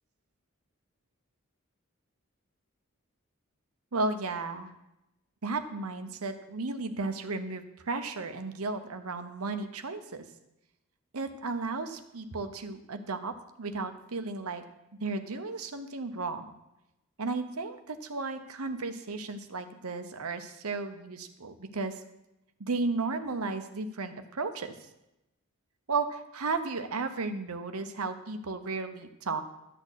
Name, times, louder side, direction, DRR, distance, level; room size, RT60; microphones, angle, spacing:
voice 1, 3.9-4.7 5.4-10.2 11.1-13.3 13.6-14.6 15.0-16.5 17.2-22.0 22.6-24.7 25.9-29.4, right 3 dB, 85° right, 8 dB, 0.9 m, -34 dB
12.0 x 4.3 x 8.2 m, 0.91 s
head